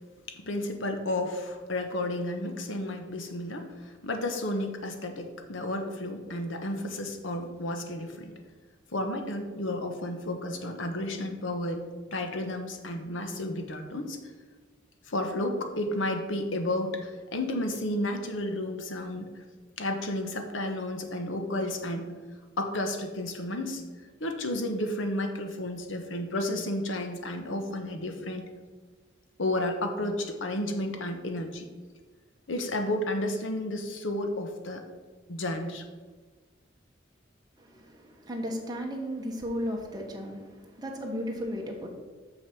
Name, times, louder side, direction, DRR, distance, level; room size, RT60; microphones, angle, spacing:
voice 1, 0.3-8.3 8.9-11.8 12.1-14.2 15.1-19.4 19.8-22.1 22.6-23.8 24.2-28.5 29.4-31.7 32.5-34.8 35.3-35.8, left 1 dB, 85° left, 5 dB, 1.1 m, -32 dB
voice 2, 37.6-41.9, equal, 20° right, 0 dB, 1.3 m, -35 dB
6.4 x 6.3 x 6.2 m, 1.4 s
head